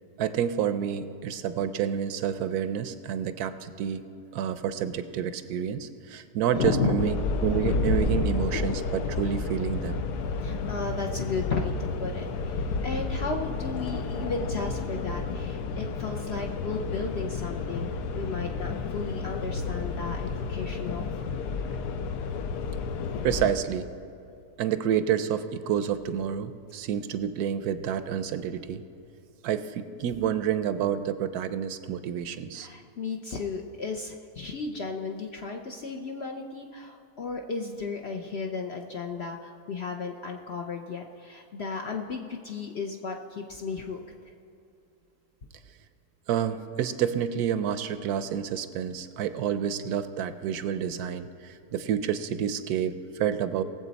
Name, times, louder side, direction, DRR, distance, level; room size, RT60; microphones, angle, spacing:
voice 1, 0.2-4.1 4.3-10.0 23.2-23.9 24.6-28.8 29.4-32.7 46.3-53.6, right 9 dB, 75° right, 11 dB, 1.1 m, -29 dB
voice 2, 6.5-7.0 10.3-17.9 18.1-21.0 32.6-44.0, left 4 dB, 60° left, 2 dB, 0.7 m, -34 dB
sound 1, 7.0-23.5, left 4 dB, 85° left, 1.3 m, -31 dB
19.5 x 7.6 x 4.1 m, 2.6 s
omnidirectional pair, 1.7 m